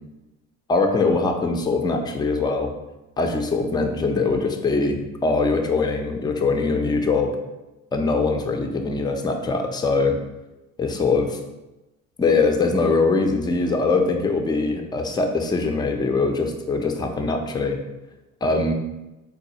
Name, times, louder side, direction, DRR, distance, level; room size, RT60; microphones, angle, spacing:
voice 1, 0.7-2.7 3.2-7.4 7.9-10.2 10.8-11.4 12.2-17.8 18.4-18.7, left 3 dB, 10° left, 4 dB, 0.4 m, -22 dB
3.9 x 2.3 x 2.7 m, 1.0 s
hypercardioid pair, 55°, 41 cm